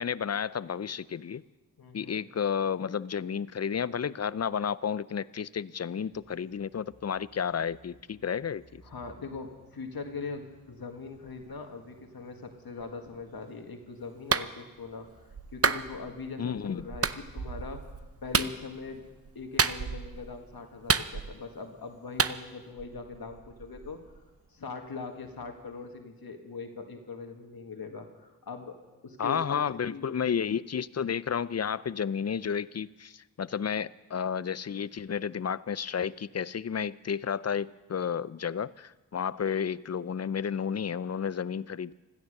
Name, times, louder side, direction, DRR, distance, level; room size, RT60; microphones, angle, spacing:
voice 1, 0.0-1.4 1.9-8.8 16.4-16.8 29.2-42.0, left 7 dB, 45° left, 18 dB, 0.5 m, -32 dB
voice 2, 1.8-2.2 8.8-17.9 18.2-19.1 19.4-24.0 24.5-28.8 29.0-29.6 29.9-30.1, left 4 dB, 75° left, 4 dB, 1.8 m, -41 dB
sound 1, 6.1-25.9, right 4 dB, 75° right, 2.7 m, -52 dB
Clapping, 14.3-14.5 15.6-15.8 17.0-17.2 18.3-18.5 19.6-20.0 20.9-21.5 22.2-22.4, right 5 dB, 40° right, 0.7 m, -26 dB
16.0 x 13.5 x 6.6 m, 1.1 s
cardioid pair, 40°, 36 cm